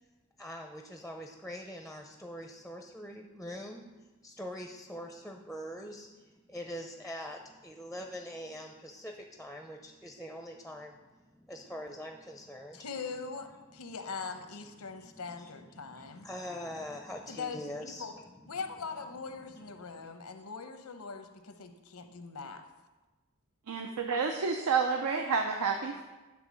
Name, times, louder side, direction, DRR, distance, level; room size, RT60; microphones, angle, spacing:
voice 1, 0.4-3.8 4.2-13.1 14.8-18.1 19.8-20.1, equal, ahead, 3 dB, 0.5 m, -44 dB
voice 2, 12.7-16.3 17.3-18.1 18.5-22.6, left 5 dB, 85° left, 7 dB, 0.8 m, -41 dB
voice 3, 23.7-26.0, right 5 dB, 90° right, 4 dB, 0.6 m, -29 dB
10.0 x 3.7 x 6.2 m, 1.2 s
head